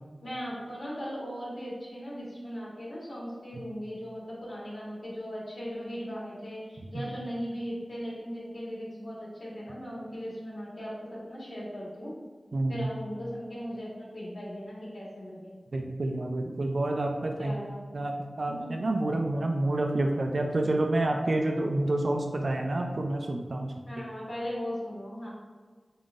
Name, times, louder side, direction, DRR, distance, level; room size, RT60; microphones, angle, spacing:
voice 1, 0.2-12.2 12.7-15.5 17.4-17.9 18.6-18.7 23.9-25.3, equal, 75° left, -7 dB, 1.5 m, -38 dB
voice 2, 12.5-12.9 15.7-17.5 17.9-23.7, right 2 dB, 65° right, 2 dB, 0.4 m, -28 dB
3.8 x 3.7 x 2.5 m, 1.4 s
wide cardioid pair, 60°, 0 cm